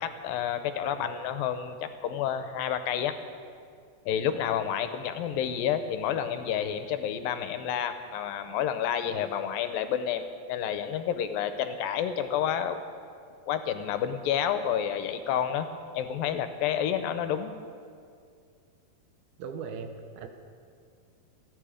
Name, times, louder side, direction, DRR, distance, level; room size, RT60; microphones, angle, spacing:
voice 1, 0.0-3.1 4.1-12.8 13.5-15.7 15.9-17.5, left 9 dB, 80° left, 9 dB, 2.5 m, -29 dB
voice 2, 19.4-20.3, right 5 dB, 85° right, 6 dB, 3.0 m, -39 dB
28.0 x 9.6 x 5.0 m, 2.3 s
omnidirectional pair, 4.1 m